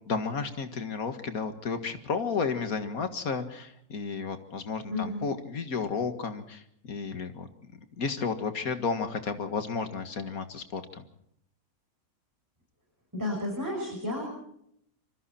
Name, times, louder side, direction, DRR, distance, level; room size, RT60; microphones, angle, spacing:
voice 1, 0.1-7.5 8.0-11.0, left 5 dB, 75° left, 8 dB, 2.2 m, -32 dB
voice 2, 4.9-5.3 13.1-14.2, left 1 dB, 10° right, -3 dB, 6.4 m, -32 dB
25.5 x 23.5 x 4.3 m, 0.72 s
omnidirectional pair, 1.5 m